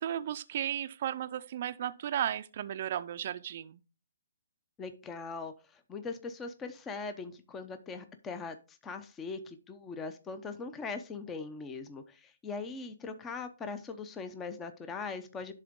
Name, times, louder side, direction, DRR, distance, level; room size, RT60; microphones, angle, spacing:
voice 1, 0.0-3.8, right 10 dB, 50° right, 0.5 m, -34 dB
voice 2, 4.8-15.5, left 4 dB, 15° left, 0.7 m, -41 dB
11.0 x 3.8 x 3.6 m
hypercardioid pair, 150°, 0 cm